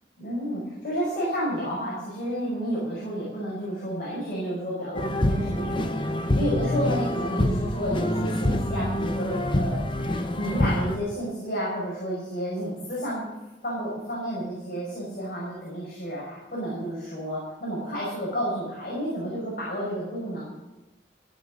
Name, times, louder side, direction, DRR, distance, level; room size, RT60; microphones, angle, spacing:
voice 1, 0.2-13.3 13.6-20.5, equal, 55° left, -6 dB, 5.4 m, -31 dB
sound 1, 4.9-11.0, left 1 dB, 30° left, 1.0 m, -26 dB
15.5 x 6.4 x 7.2 m, 1.0 s
head